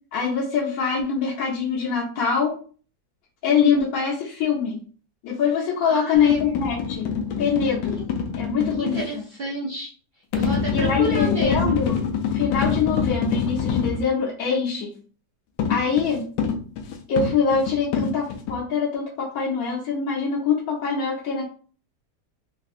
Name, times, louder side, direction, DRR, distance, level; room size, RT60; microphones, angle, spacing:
voice 1, 0.1-2.6 3.4-4.8 5.2-7.1 7.4-8.0 8.4-9.0 10.7-12.0 12.3-14.9 15.7-16.3 17.1-21.4, left 6 dB, 70° left, -2 dB, 1.0 m, -23 dB
voice 2, 5.8-6.4 8.0-8.1 8.8-11.8, right 2 dB, 65° right, -4 dB, 0.5 m, -31 dB
sound 1, 6.2-9.0 10.3-14.1 15.6-18.6, left 6 dB, 90° left, 1.2 m, -26 dB
3.5 x 2.5 x 2.4 m, 0.40 s
omnidirectional pair, 1.8 m